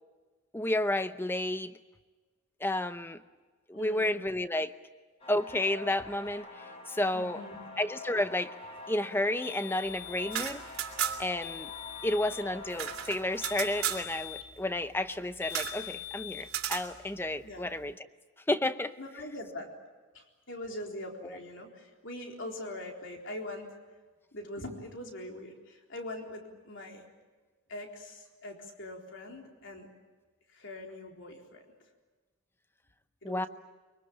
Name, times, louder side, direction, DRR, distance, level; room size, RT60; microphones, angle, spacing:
voice 1, 0.5-1.8 2.6-3.2 3.7-4.7 5.3-7.4 7.8-8.5 8.9-10.6 11.2-11.7 12.0-18.0 18.5-18.9 21.2-21.4 33.2-33.5, left 1 dB, 10° left, 11 dB, 0.7 m, -31 dB
voice 2, 3.7-4.2 7.1-7.7 17.4-17.7 19.0-19.7 20.1-23.7 24.3-27.1 27.7-29.9 30.5-31.6 33.2-33.5, left 1 dB, 55° left, 1 dB, 4.0 m, -42 dB
sound 1, 5.2-13.9, left 3 dB, 25° left, 4.8 m, -46 dB
sound 2, 9.4-10.5 11.4-12.5 13.4-14.6 15.4-16.5, left 14 dB, 75° left, 2.9 m, -43 dB
sound 3, 10.2-11.4 11.7-11.8 12.1-14.1 15.5-15.8 16.5-16.9, right 10 dB, 80° right, 2.9 m, -34 dB
24.0 x 24.0 x 8.9 m, 1.3 s
head